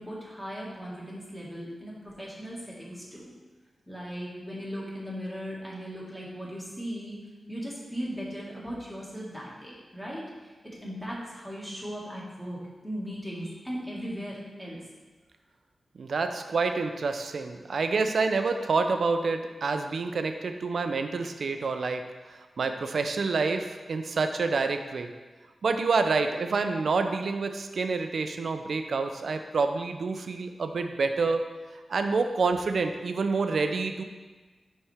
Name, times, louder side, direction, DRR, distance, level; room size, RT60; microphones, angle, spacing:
voice 1, 0.0-3.2 3.9-7.2 7.5-10.2 10.8-14.8, equal, 5° left, -5 dB, 2.0 m, -38 dB
voice 2, 16.0-25.1 25.6-31.4 31.9-34.0, right 4 dB, 70° right, 7 dB, 0.5 m, -28 dB
10.0 x 4.2 x 3.5 m, 1.3 s
wide cardioid pair, 110°, 0 cm